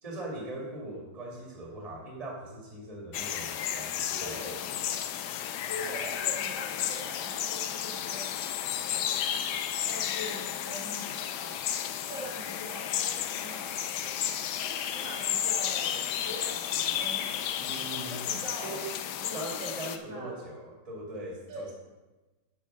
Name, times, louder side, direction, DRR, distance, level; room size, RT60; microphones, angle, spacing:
voice 1, 0.0-4.6 17.6-18.2 18.6-19.0 19.3-21.7, right 2 dB, 20° right, -2 dB, 1.8 m, -40 dB
sound 1, 3.1-20.0, left 10 dB, 75° left, 1.1 m, -32 dB
voice 2, 4.1-4.7 5.7-9.4 9.9-11.6 12.0-13.8 14.5-17.6 18.0-18.8 19.2-20.3 21.5-21.7, equal, 70° right, -4 dB, 2.6 m, -43 dB
10.5 x 4.5 x 5.9 m, 1.1 s
omnidirectional pair, 2.0 m